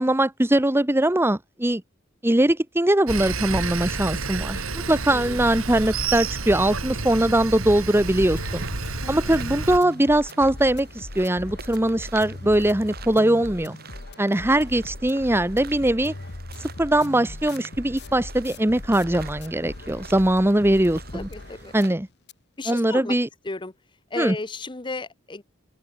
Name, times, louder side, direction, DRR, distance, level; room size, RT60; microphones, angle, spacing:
voice 1, 0.0-1.8 2.2-8.6 9.1-13.8 14.2-16.1 16.8-21.3 21.7-22.1 22.7-23.3 24.2-24.4, right 1 dB, 10° right, 0.9 m, -21 dB
Sawing, 3.1-9.8, right 4 dB, 90° right, 3.1 m, -30 dB
sound 1, 7.9-22.0 22.3-22.4 22.8-22.9, left 2 dB, 55° left, 1.3 m, -39 dB
sound 2, 8.0-21.9, right 5 dB, 50° right, 5.5 m, -47 dB
voice 2, 9.0-9.3 21.1-21.7 22.6-23.1 23.4-23.7 24.1-25.4, left 3 dB, 25° left, 0.8 m, -34 dB
open air
head